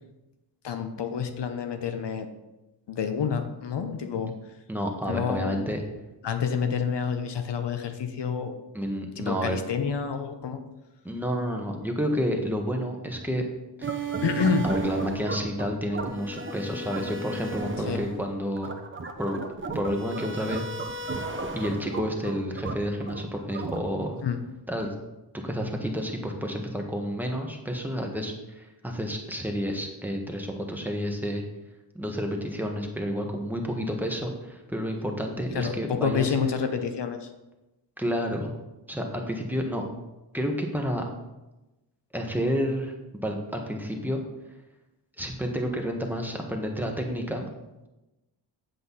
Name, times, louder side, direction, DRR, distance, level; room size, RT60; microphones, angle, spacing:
voice 1, 0.6-2.3 2.9-4.3 5.1-5.5 6.2-8.5 9.2-10.6 14.2-14.6 17.9-18.1 24.2-24.4 35.5-37.3, left 6 dB, 70° left, 7 dB, 0.9 m, -28 dB
voice 2, 4.7-5.8 8.7-9.6 11.0-13.4 13.8-13.9 14.6-18.7 19.2-19.4 19.7-20.6 21.5-24.2 24.7-24.9 25.3-31.4 31.9-36.3 38.0-38.6 38.9-39.8 40.3-41.0 42.1-42.9 43.2-44.2 45.2-47.5, equal, 5° right, 1 dB, 1.4 m, -30 dB
sound 1, 13.8-24.2, right 3 dB, 30° right, 1.0 m, -34 dB
8.0 x 7.9 x 4.1 m, 1.0 s
cardioid pair, 85°, 43 cm